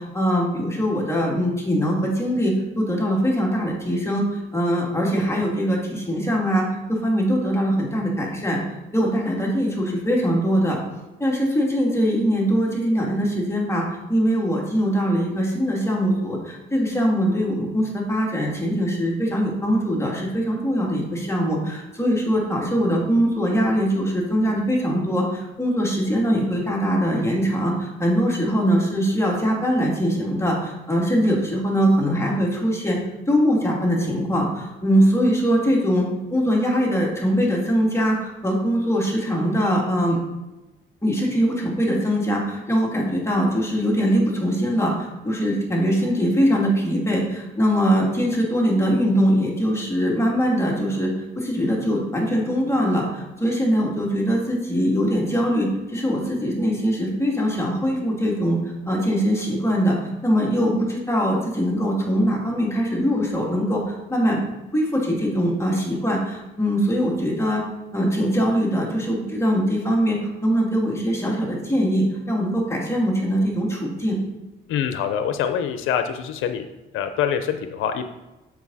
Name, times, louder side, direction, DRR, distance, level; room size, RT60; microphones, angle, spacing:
voice 1, 0.0-8.6 8.9-10.8 11.2-13.8 14.1-33.0 33.3-40.2 41.0-58.6 58.9-60.0 60.2-64.4 64.7-67.6 67.9-74.2, equal, 15° left, -2 dB, 2.5 m, -22 dB
voice 2, 74.7-76.7 76.9-78.1, left 8 dB, 85° left, 8 dB, 0.6 m, -25 dB
7.1 x 6.1 x 4.1 m, 1.1 s
cardioid pair, 90°, 20 cm